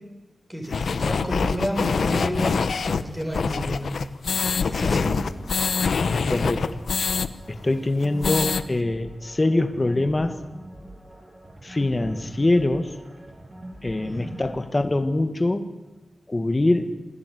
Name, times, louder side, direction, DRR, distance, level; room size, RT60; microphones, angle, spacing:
voice 1, 0.5-2.6 2.8-3.9 4.7-5.2 14.0-14.4, equal, 10° right, 2 dB, 7.0 m, -30 dB
sound 1, 0.7-7.3 7.6-7.7 8.0-8.6, left 5 dB, 80° left, 1.2 m, -24 dB
sound 2, 5.0-14.6, right 1 dB, 25° right, 7.6 m, -43 dB
voice 2, 6.1-6.8 7.5-10.4 11.6-13.0 13.8-15.7 16.3-16.9, left 2 dB, 25° left, 8 dB, 1.9 m, -24 dB
27.5 x 17.5 x 9.7 m, 1.1 s
wide cardioid pair, 135°, 0 cm